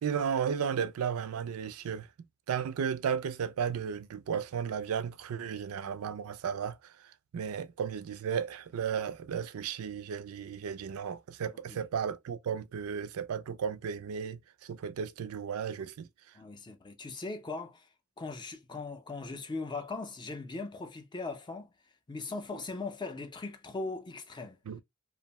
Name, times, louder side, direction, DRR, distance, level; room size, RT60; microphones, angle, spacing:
voice 1, 0.0-2.1 2.5-16.1 24.7-24.8, right 7 dB, 80° right, 0.4 m, -34 dB
voice 2, 16.3-17.9 18.2-21.7 22.1-24.6, left 3 dB, 20° left, 0.4 m, -39 dB
2.6 x 2.1 x 2.8 m
head